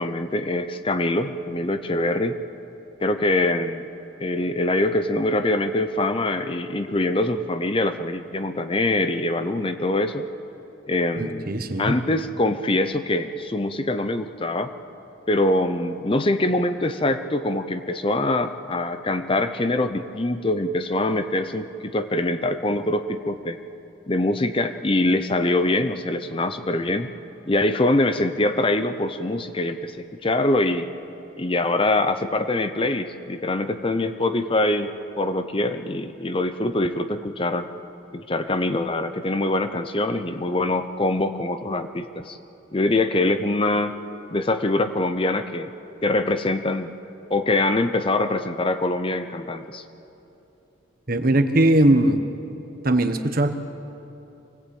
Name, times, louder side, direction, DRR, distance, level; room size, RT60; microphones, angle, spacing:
voice 1, 0.0-2.4 3.0-3.8 4.2-10.3 10.9-11.5 11.8-14.7 15.3-23.6 24.1-27.1 27.5-30.9 31.4-37.7 38.1-42.4 42.7-44.0 44.3-45.7 46.0-46.9 47.3-49.8, left 2 dB, 25° left, 9 dB, 0.7 m, -24 dB
voice 2, 11.2-11.9 51.1-52.2 52.8-53.5, right 1 dB, 45° right, 8 dB, 1.2 m, -19 dB
24.5 x 18.5 x 8.5 m, 2.9 s
head